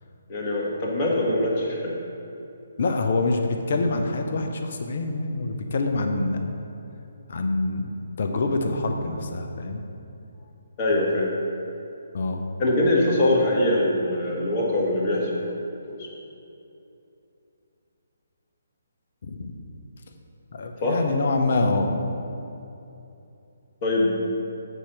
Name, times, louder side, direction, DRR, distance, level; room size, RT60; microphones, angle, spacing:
voice 1, 0.3-2.0 10.8-11.3 12.6-15.6 15.9-16.1 20.8-21.0 23.8-24.2, left 1 dB, 30° left, -3 dB, 1.5 m, -23 dB
voice 2, 2.8-6.7 7.3-9.8 12.1-12.4 19.2-19.5 20.5-21.9, left 2 dB, 50° left, 4 dB, 0.8 m, -26 dB
8.0 x 4.3 x 6.1 m, 2.8 s
figure-of-eight pair, 135°, 0 cm